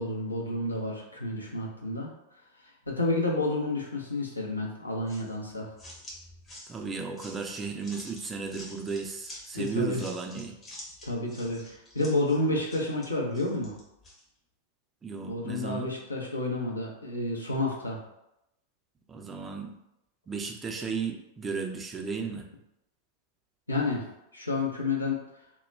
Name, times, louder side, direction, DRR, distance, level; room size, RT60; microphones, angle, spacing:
voice 1, 0.0-2.1 2.9-5.7 9.5-10.0 11.0-13.7 15.3-18.0 23.7-24.0 24.3-25.2, left 2 dB, 80° left, -2 dB, 0.6 m, -30 dB
sound 1, 5.1-14.2, left 1 dB, 20° left, 0.7 m, -48 dB
voice 2, 6.7-10.6 15.0-15.9 19.1-19.8 20.3-22.5, right 5 dB, 15° right, 3 dB, 0.3 m, -34 dB
2.3 x 2.1 x 3.1 m, 0.85 s
figure-of-eight pair, 90°, 0 cm